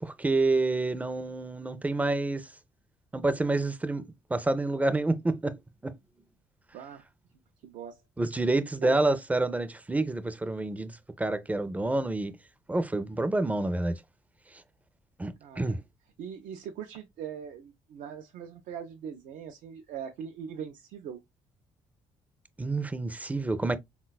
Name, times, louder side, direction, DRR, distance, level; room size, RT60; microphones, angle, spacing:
voice 1, 0.0-2.4 3.1-4.0 4.3-5.6 5.8-5.9 8.2-12.4 12.7-13.9 15.2-15.8 22.6-23.8, right 2 dB, 10° right, 0.4 m, -28 dB
voice 2, 6.7-7.1 7.6-8.0 8.8-9.0 15.4-15.8 16.2-21.2, right 8 dB, 75° right, 0.4 m, -41 dB
3.8 x 2.2 x 2.2 m
supercardioid pair, 70°, 13 cm